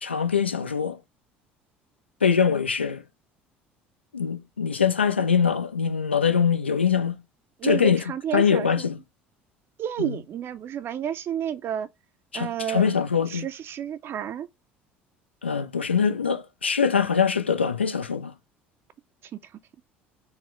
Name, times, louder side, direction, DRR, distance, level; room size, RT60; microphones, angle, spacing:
voice 1, 0.0-1.0 2.2-3.0 4.1-7.2 7.6-8.0 8.3-9.0 10.0-10.2 12.3-13.5 15.4-18.3, left 6 dB, 90° left, 0.4 m, -23 dB
voice 2, 7.6-8.9 9.8-11.9 12.3-12.9 13.3-14.5 19.4-19.5, right 9 dB, 40° right, 0.4 m, -30 dB
4.2 x 2.1 x 3.5 m
figure-of-eight pair, 60°, 6 cm